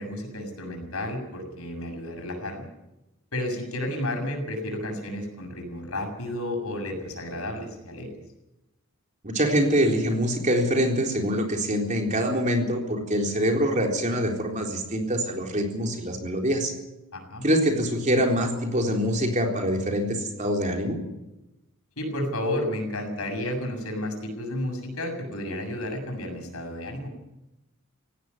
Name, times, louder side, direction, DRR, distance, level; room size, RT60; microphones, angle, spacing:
voice 1, 0.0-2.7 3.3-8.1 17.1-17.5 22.0-27.1, left 1 dB, 75° left, 4 dB, 7.0 m, -32 dB
voice 2, 9.2-16.7 17.4-21.0, equal, 35° right, 2 dB, 3.9 m, -24 dB
18.0 x 17.0 x 9.6 m, 0.95 s
head